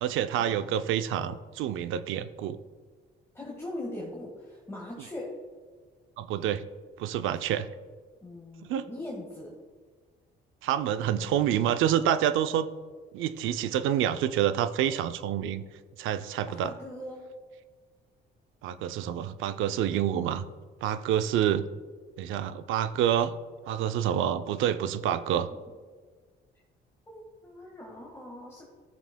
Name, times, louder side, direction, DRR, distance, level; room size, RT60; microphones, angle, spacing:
voice 1, 0.0-2.6 6.2-6.6 7.0-7.7 8.6-8.9 10.6-12.7 13.1-15.6 16.0-16.8 18.6-20.4 20.8-21.6 22.2-23.3 23.7-25.5, right 10 dB, 85° right, 12 dB, 0.5 m, -27 dB
voice 2, 3.3-5.4 8.2-9.6 16.4-17.2 27.1-28.6, left 1 dB, 15° left, -3 dB, 1.6 m, -40 dB
13.5 x 7.1 x 2.2 m, 1.5 s
cardioid pair, 90°, 20 cm